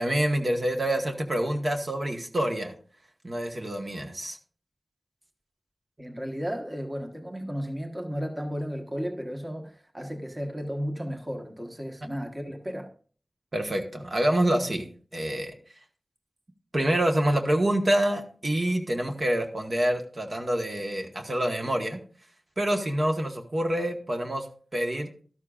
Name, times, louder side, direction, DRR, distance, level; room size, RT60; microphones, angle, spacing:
voice 1, 0.0-2.7 3.2-4.4 13.5-14.9 15.1-15.5 16.7-22.0 22.6-24.5 24.7-25.1, right 1 dB, 45° right, 1.3 m, -26 dB
voice 2, 6.0-12.9, equal, 20° right, 1.2 m, -34 dB
12.5 x 12.0 x 2.4 m
wide cardioid pair, 85°, 0 cm